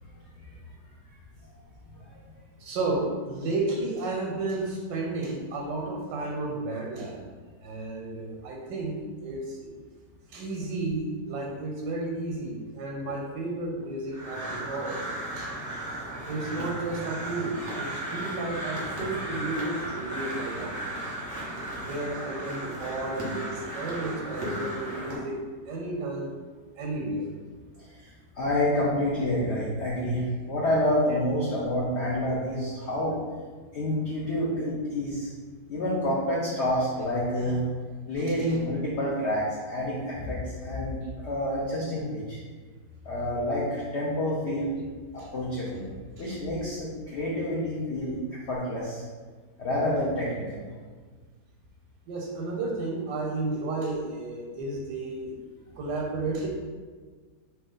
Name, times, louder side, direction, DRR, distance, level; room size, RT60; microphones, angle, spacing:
voice 1, 2.6-7.3 7.6-9.7 10.3-15.1 15.4-15.5 16.3-20.9 21.8-26.3 26.8-27.3 38.4-38.6 45.2-45.3 46.2-46.3 52.1-55.3 55.8-56.5, right 2 dB, 90° right, -1 dB, 1.3 m, -32 dB
Crow, 14.1-25.2, right 1 dB, 20° right, 0.5 m, -35 dB
voice 2, 28.4-33.2 33.7-35.3 35.7-37.6 38.1-42.4 43.1-44.8 45.1-45.9 46.2-48.2 48.5-49.0 49.6-50.7, left 1 dB, 70° left, -5 dB, 0.6 m, -28 dB
3.0 x 2.8 x 3.7 m, 1.5 s
omnidirectional pair, 1.9 m